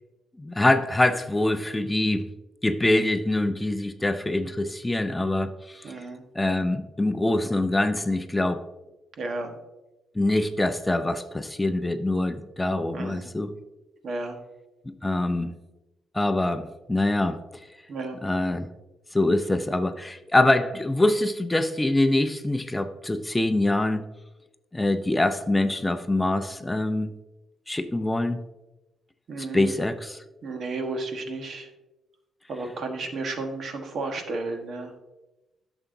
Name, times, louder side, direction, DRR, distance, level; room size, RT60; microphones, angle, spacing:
voice 1, 0.4-2.3 2.6-6.0 6.3-8.7 10.1-13.5 14.9-15.5 16.1-17.6 18.2-18.7 19.1-24.1 24.7-27.1 27.7-28.4 29.4-30.2, left 1 dB, 15° left, 10 dB, 0.5 m, -24 dB
voice 2, 5.8-6.2 9.2-9.5 12.9-13.3 14.0-14.4 17.9-18.2 29.3-29.7 30.4-31.7 32.5-34.9, right 3 dB, 55° right, 5 dB, 1.3 m, -32 dB
11.0 x 7.0 x 2.7 m, 1.0 s
cardioid pair, 90°, 0 cm